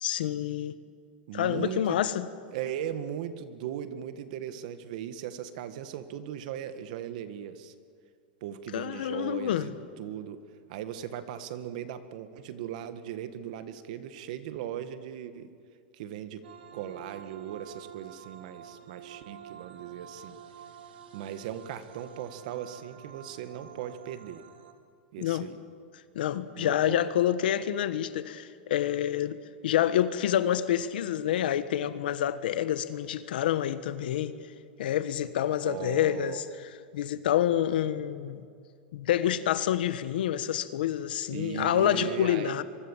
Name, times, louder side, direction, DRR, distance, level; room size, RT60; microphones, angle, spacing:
voice 1, 0.0-0.7 1.3-2.3 8.7-9.7 25.2-25.5 26.1-34.3 34.8-36.4 36.9-38.4 38.9-42.6, left 11 dB, 70° left, 1.4 m, -28 dB
voice 2, 1.3-2.0 2.5-7.7 8.4-9.7 10.0-10.4 10.7-15.5 15.9-16.4 16.7-20.4 21.1-24.4 25.1-25.6 26.6-27.0 35.6-36.5 41.3-42.6, right 10 dB, 50° right, 1.7 m, -38 dB
sound 1, 16.4-24.7, right 8 dB, 80° right, 2.8 m, -49 dB
24.5 x 24.0 x 7.4 m
supercardioid pair, 165°, 5 cm